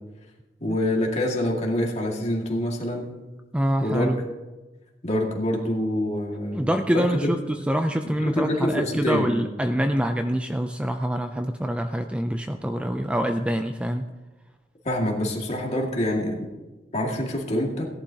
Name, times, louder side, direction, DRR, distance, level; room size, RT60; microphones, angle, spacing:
voice 1, 0.6-3.1 3.8-4.2 5.0-7.4 8.0-9.3 14.8-16.4 16.9-17.8, left 1 dB, 40° left, 0 dB, 2.0 m, -26 dB
voice 2, 3.5-4.2 6.5-14.0, equal, 5° right, 7 dB, 0.4 m, -25 dB
17.5 x 11.0 x 2.8 m, 1.2 s
head